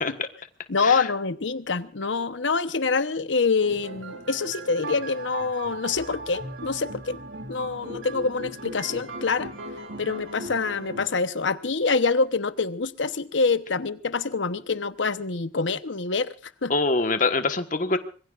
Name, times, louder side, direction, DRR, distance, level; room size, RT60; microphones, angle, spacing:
voice 1, 0.7-7.2 7.5-9.5 10.0-16.3 16.6-16.7, left 4 dB, 85° left, 1.0 m, -26 dB
sound 1, 3.6-11.1, right 2 dB, 90° right, 2.8 m, -38 dB
voice 2, 16.7-18.0, left 3 dB, 45° left, 1.4 m, -24 dB
25.5 x 21.5 x 2.5 m
head